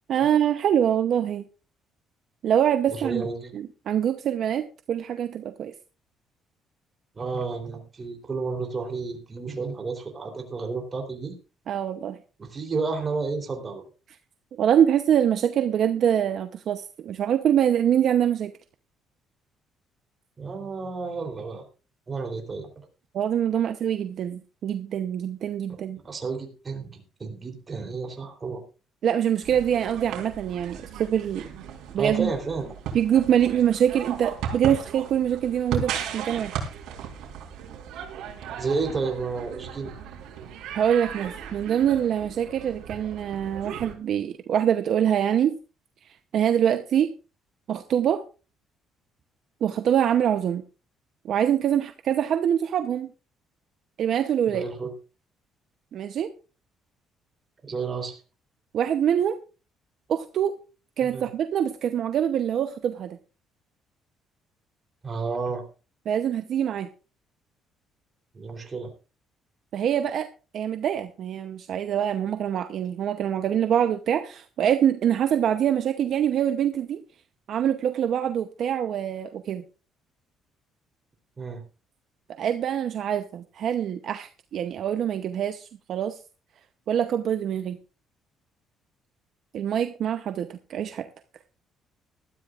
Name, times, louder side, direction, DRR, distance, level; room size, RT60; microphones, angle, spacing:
voice 1, 0.1-1.4 2.4-3.2 3.5-5.7 11.7-12.2 14.6-18.5 23.1-26.0 29.0-31.5 31.9-32.3 32.9-36.6 40.7-45.6 46.3-47.1 47.7-48.2 49.6-50.6 51.2-53.1 54.0-54.6 55.9-56.3 58.7-59.4 60.1-60.5 61.0-63.2 66.1-66.9 69.7-70.3 70.5-77.0 77.5-79.6 82.4-86.2 86.9-87.8 89.5-91.1, right 9 dB, 55° right, 8 dB, 0.8 m, -24 dB
voice 2, 2.9-3.5 7.1-11.3 12.4-13.8 20.4-21.6 22.1-22.7 26.0-28.6 32.0-32.7 38.6-39.9 54.5-54.9 57.6-58.2 61.0-61.2 65.0-65.6 68.3-68.9 81.4-81.6, right 4 dB, 25° right, 3 dB, 3.4 m, -31 dB
sound 1, 29.4-43.9, right 8 dB, 80° right, 3.9 m, -36 dB
19.5 x 13.0 x 2.5 m, 0.34 s
cardioid pair, 140°, 0 cm